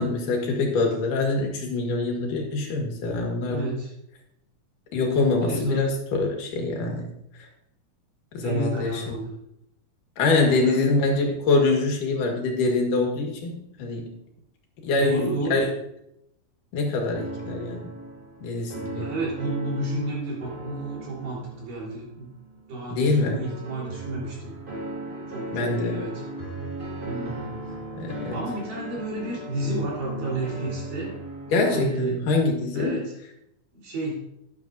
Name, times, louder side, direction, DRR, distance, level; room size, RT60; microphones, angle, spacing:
voice 1, 0.0-3.7 4.9-7.1 8.3-9.2 10.2-14.1 14.8-15.7 16.7-17.9 18.4-19.1 22.9-23.4 25.5-26.1 27.9-28.4 31.5-33.1, left 3 dB, 75° left, 2 dB, 3.2 m, -24 dB
voice 2, 3.5-3.9 5.5-5.9 8.4-9.4 10.4-10.8 14.9-15.7 19.0-22.3 22.7-24.5 25.3-26.1 27.0-27.5 28.3-31.2 31.7-32.2 32.7-33.0 33.7-34.2, right 2 dB, 75° right, -5 dB, 5.3 m, -31 dB
sound 1, 17.1-31.8, right 1 dB, 30° right, 0.9 m, -37 dB
12.0 x 10.5 x 2.6 m, 0.79 s
omnidirectional pair, 3.8 m